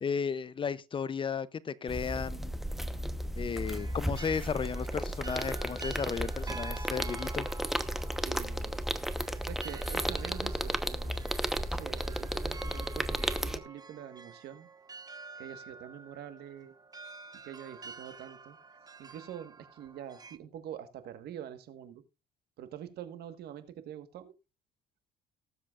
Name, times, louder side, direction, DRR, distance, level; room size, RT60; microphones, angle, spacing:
voice 1, 0.0-2.5 3.4-7.5, left 6 dB, 30° left, 0.5 m, -34 dB
sound 1, 1.9-13.6, equal, ahead, 0.9 m, -34 dB
sound 2, 3.6-20.4, right 4 dB, 25° right, 1.1 m, -49 dB
voice 2, 8.2-8.8 9.1-11.2 11.6-14.7 15.4-16.8 17.4-18.6 19.0-22.0 22.6-24.3, right 10 dB, 70° right, 1.4 m, -45 dB
19.0 x 7.6 x 2.4 m
cardioid pair, 110°, 17 cm